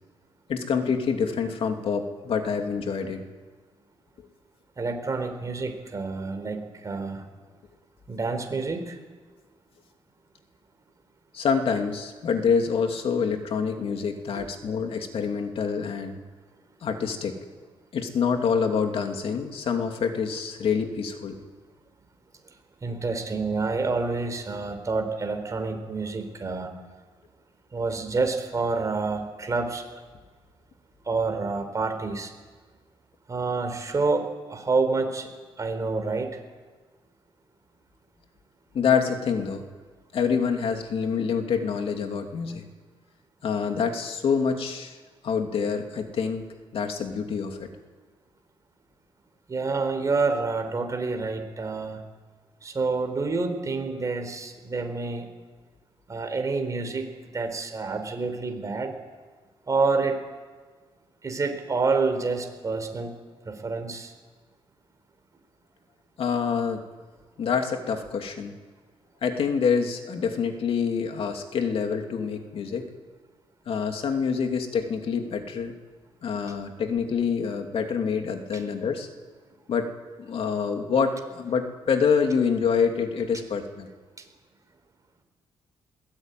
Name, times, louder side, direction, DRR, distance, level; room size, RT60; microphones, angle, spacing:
voice 1, 0.5-3.2 11.3-16.2 16.8-17.3 17.9-21.4 38.7-39.6 40.1-42.6 43.4-45.0 45.2-46.5 46.7-47.7 66.2-66.8 67.4-68.5 69.2-72.9 73.7-75.7 76.2-79.1 79.7-79.9 80.2-83.9, left 6 dB, 60° left, 5 dB, 2.9 m, -26 dB
voice 2, 4.8-7.2 8.1-9.0 22.8-26.7 27.7-29.9 31.1-32.3 33.3-35.3 35.6-36.4 49.5-52.0 52.6-55.3 56.1-57.1 57.3-58.9 59.7-60.2 61.2-63.1 63.4-64.1, right 3 dB, 30° right, 6 dB, 4.0 m, -28 dB
21.5 x 18.0 x 9.3 m, 1.4 s
cardioid pair, 105°, 11 cm